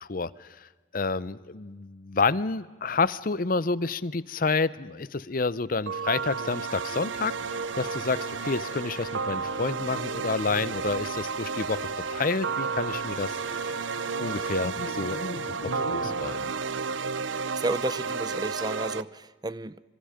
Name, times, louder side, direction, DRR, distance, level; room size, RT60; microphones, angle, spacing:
voice 1, 0.0-0.7 0.9-13.4 14.2-15.2 15.6-16.5, left 4 dB, 50° left, 0.7 m, -29 dB
sound 1, 5.9-19.0, right 5 dB, 85° right, 0.7 m, -32 dB
sound 2, 7.3-16.3, left 2 dB, 90° left, 1.4 m, -43 dB
voice 2, 17.2-19.8, right 2 dB, 20° right, 0.6 m, -32 dB
27.0 x 25.5 x 5.1 m
head